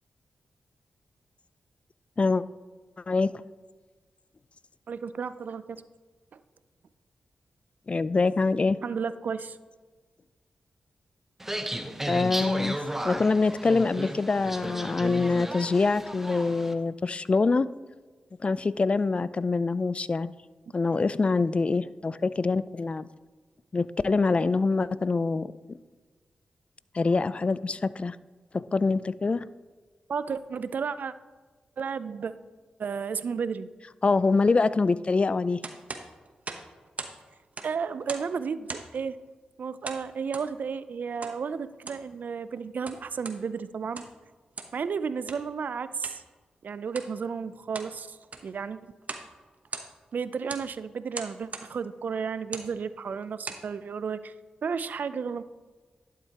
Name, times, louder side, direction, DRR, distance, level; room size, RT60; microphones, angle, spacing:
voice 1, 4.9-5.8 6.3-6.4 8.8-9.6 30.1-31.1 31.8-32.3 32.8-33.7 37.6-39.2 39.6-44.1 44.7-46.2 46.6-48.2 48.4-48.9 50.1-54.3 54.6-55.4, right 6 dB, 65° right, 14 dB, 0.4 m, -33 dB
voice 2, 7.9-8.8 12.1-12.8 13.0-17.7 18.4-20.3 20.7-23.1 23.7-25.8 26.9-28.2 28.5-29.5 34.0-35.6, left 3 dB, 40° left, 17 dB, 0.3 m, -25 dB
sound 1, 11.4-16.7, right 1 dB, 10° right, 0.8 m, -34 dB
sound 2, 35.6-37.2 37.4-38.3 38.7-39.0 39.8-40.5 41.2-41.4 41.7-42.1 42.6-43.4 43.8-44.2 44.5-44.8 45.3-45.4 46.0-46.2 46.9-47.1 47.5-47.9 48.2-48.5 49.0-49.3 49.6-50.1 50.5-50.7 51.1-51.7 52.4-52.7 53.2-53.7, right 3 dB, 50° right, 0.9 m, -39 dB
11.5 x 7.3 x 2.9 m, 1.3 s
supercardioid pair, 45°, 3 cm